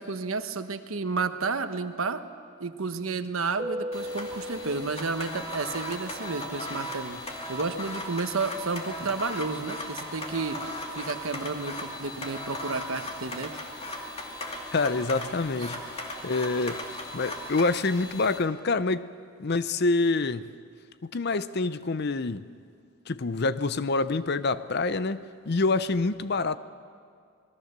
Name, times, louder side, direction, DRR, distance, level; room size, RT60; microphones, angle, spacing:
voice 1, 0.0-2.2 2.6-7.2 7.5-10.6 10.9-13.5 15.6-15.7, right 4 dB, 90° right, 1.1 m, -31 dB
Keyboard (musical), 3.6-6.1, equal, 20° right, 0.6 m, -37 dB
sound 1, 3.9-18.4, left 1 dB, 30° left, 2.4 m, -37 dB
voice 2, 14.7-15.8 16.2-16.8 17.1-19.1 19.4-20.5 21.0-22.5 23.1-26.6, left 3 dB, 55° left, 0.7 m, -26 dB
26.0 x 20.5 x 6.8 m
head